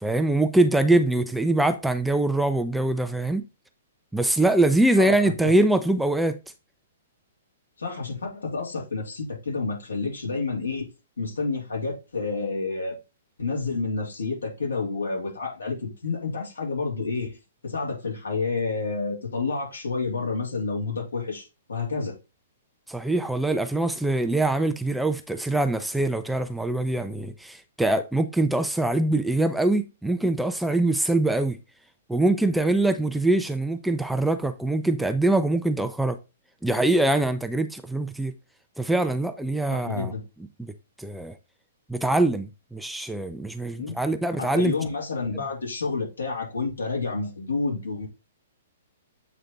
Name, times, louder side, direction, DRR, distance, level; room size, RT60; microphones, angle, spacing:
voice 1, 0.0-3.4 4.1-6.4 22.9-31.6 32.1-36.2 36.6-38.3 38.8-40.1 40.6-40.7 41.0-41.3 41.9-44.7, right 2 dB, 5° right, 0.5 m, -23 dB
voice 2, 5.0-5.5 7.8-10.9 11.2-12.9 13.4-17.4 17.6-22.1 39.7-40.2 43.8-43.9 44.4-48.1, left 4 dB, 80° left, 3.1 m, -29 dB
8.0 x 3.4 x 3.9 m
figure-of-eight pair, 115°, 0 cm